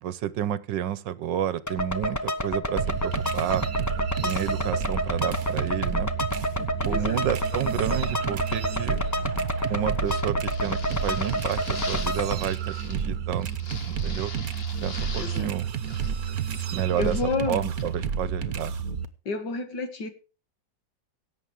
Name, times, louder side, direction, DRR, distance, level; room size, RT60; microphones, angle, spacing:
voice 1, 0.0-3.7 4.2-6.1 6.9-9.0 9.7-13.5 14.0-14.3 14.8-15.7 16.7-17.1 17.5-18.7, right 10 dB, 80° right, 1.5 m, -30 dB
sound 1, 1.7-12.3, left 1 dB, 15° left, 0.6 m, -29 dB
sound 2, 2.8-19.1, right 7 dB, 55° right, 1.3 m, -30 dB
voice 2, 6.8-7.2 14.9-15.5 17.0-17.7 19.3-20.1, left 3 dB, 70° left, 2.4 m, -30 dB
sound 3, 10.0-13.0 13.4-15.5 15.8-17.3 17.8-17.9, left 3 dB, 35° left, 1.7 m, -42 dB
17.0 x 7.9 x 5.0 m
omnidirectional pair, 2.0 m